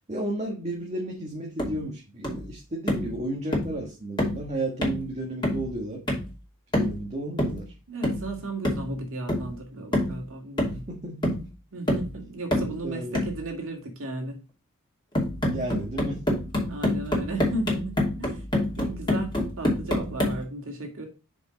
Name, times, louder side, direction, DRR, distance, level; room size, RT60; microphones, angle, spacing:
voice 1, 0.1-6.0 6.7-7.7 10.9-11.4 12.6-13.2 15.4-16.2, right 1 dB, 30° right, 0 dB, 1.4 m, -33 dB
sound 1, 1.6-1.8 2.2-2.5 2.9-3.1 3.5-3.8 4.2-4.4 4.8-5.1 5.4-5.7 6.1-6.3 6.7-7.0 7.4-7.6 8.0-8.3 8.6-8.9 9.3-9.5 9.9-10.2 10.6-10.9 11.2-11.5 11.9-12.1 12.5-12.8 13.1-13.4 15.1-20.4, left 1 dB, 20° left, 2.7 m, -27 dB
voice 2, 7.9-10.8 11.7-14.4 16.7-18.5 18.8-21.1, right 2 dB, 65° right, 2 dB, 2.3 m, -35 dB
6.4 x 5.1 x 3.9 m, 0.31 s
head